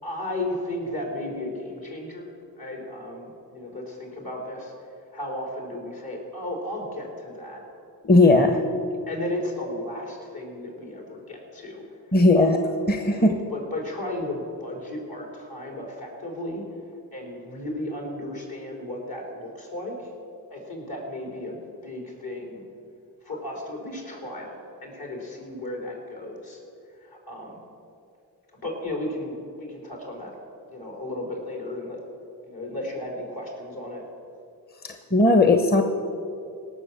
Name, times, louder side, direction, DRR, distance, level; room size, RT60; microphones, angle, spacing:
voice 1, 0.0-4.7 5.1-7.6 9.1-12.6 13.1-16.6 17.1-20.1 20.5-21.6 21.8-22.6 23.2-26.6 27.0-27.6 28.6-30.3 30.7-32.0 32.4-34.0, left 1 dB, 60° left, 0 dB, 3.9 m, -34 dB
voice 2, 8.0-8.6 12.1-12.6 12.9-13.3 34.8-35.8, left 2 dB, 25° left, 5 dB, 1.0 m, -17 dB
18.0 x 6.4 x 7.3 m, 2.5 s
cardioid pair, 45°, 41 cm